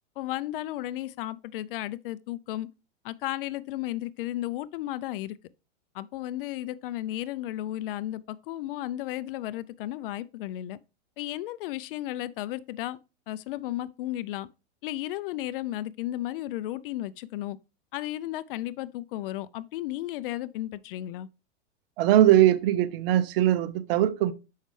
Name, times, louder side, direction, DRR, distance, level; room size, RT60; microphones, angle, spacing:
voice 1, 0.2-2.7 3.0-5.4 5.9-10.8 11.2-13.0 13.3-14.5 14.8-17.6 17.9-21.3, left 14 dB, 50° left, 0.4 m, -34 dB
voice 2, 22.0-24.3, right 12 dB, 55° right, 0.8 m, -21 dB
6.4 x 5.5 x 3.1 m
hypercardioid pair, 130°, 35 cm